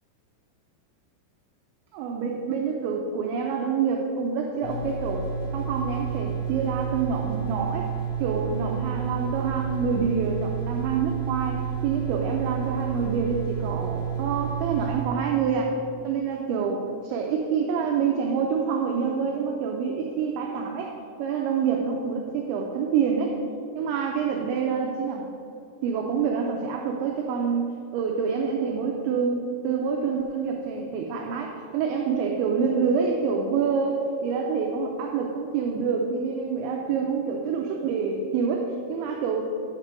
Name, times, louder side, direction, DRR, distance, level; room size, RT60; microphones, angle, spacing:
voice 1, 1.9-5.3 5.5-7.9 8.2-15.7 16.0-20.9 21.2-23.3 23.8-25.3 25.8-39.4, right 6 dB, 90° right, 1 dB, 2.6 m, -27 dB
sound 1, 4.6-15.0, right 7 dB, 75° left, 4.4 m, -30 dB
9.7 x 4.4 x 6.1 m, 2.5 s
omnidirectional pair, 6.0 m